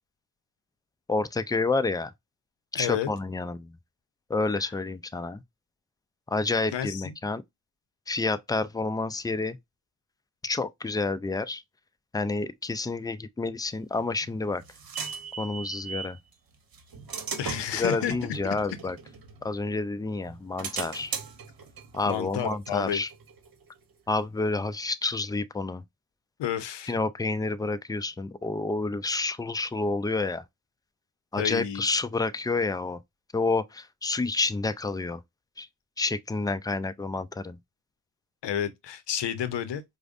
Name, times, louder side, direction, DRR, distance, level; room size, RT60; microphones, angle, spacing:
voice 1, 1.1-2.1 2.7-3.7 4.3-5.4 6.3-7.4 8.1-9.6 10.4-11.6 12.1-14.6 15.4-16.2 17.8-19.0 19.4-21.1 21.9-23.1 24.1-25.8 26.9-30.4 31.3-33.0 33.3-35.2 35.6-35.7 36.0-37.6, left 3 dB, 10° left, 0.3 m, -29 dB
voice 2, 2.7-3.1 4.6-4.7 6.7-7.1 17.4-18.1 18.4-18.6 22.1-23.0 26.4-26.9 31.3-31.8 38.4-39.8, left 9 dB, 90° left, 0.6 m, -31 dB
sound 1, 14.0-16.2 16.7-19.8 20.2-23.7, right 5 dB, 55° right, 0.9 m, -39 dB
4.9 x 2.1 x 2.4 m
cardioid pair, 55°, 41 cm